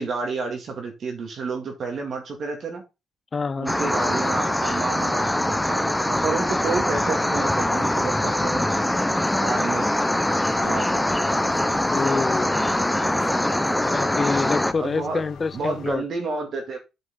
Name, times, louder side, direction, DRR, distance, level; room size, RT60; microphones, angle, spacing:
voice 1, 0.0-2.8 3.6-8.7 9.4-9.9 10.6-11.1 14.8-15.2 15.5-16.8, right 4 dB, 55° right, 2.1 m, -30 dB
voice 2, 3.3-3.8 11.9-12.6 13.9-16.0, left 4 dB, 35° left, 0.4 m, -27 dB
sound 1, 3.7-14.7, left 1 dB, 5° left, 0.7 m, -23 dB
sound 2, 10.4-16.0, left 6 dB, 70° left, 1.9 m, -42 dB
8.3 x 5.4 x 3.9 m
cardioid pair, 90°, 0 cm